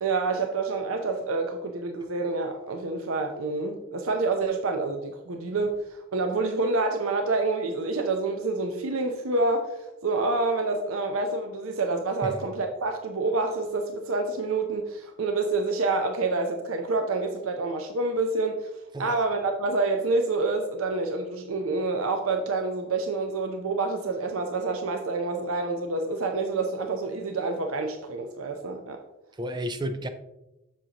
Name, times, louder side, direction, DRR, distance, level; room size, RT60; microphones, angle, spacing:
voice 1, 0.0-18.7 19.0-29.0, right 3 dB, 80° right, 5 dB, 0.6 m, -27 dB
voice 2, 29.4-30.1, right 1 dB, 20° right, 9 dB, 0.4 m, -32 dB
7.4 x 6.6 x 2.9 m, 0.94 s
head